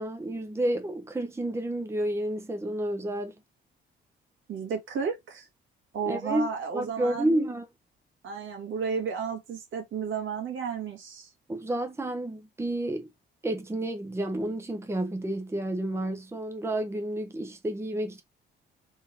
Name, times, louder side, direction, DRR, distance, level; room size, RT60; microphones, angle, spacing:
voice 1, 0.0-3.3 6.1-6.5 6.7-7.7 11.5-13.1 13.4-18.2, right 1 dB, 15° right, 0.9 m, -30 dB
voice 2, 4.5-5.5 5.9-7.5 8.2-11.3, right 6 dB, 75° right, 2.1 m, -33 dB
3.8 x 3.8 x 2.9 m
cardioid pair, 90°, 20 cm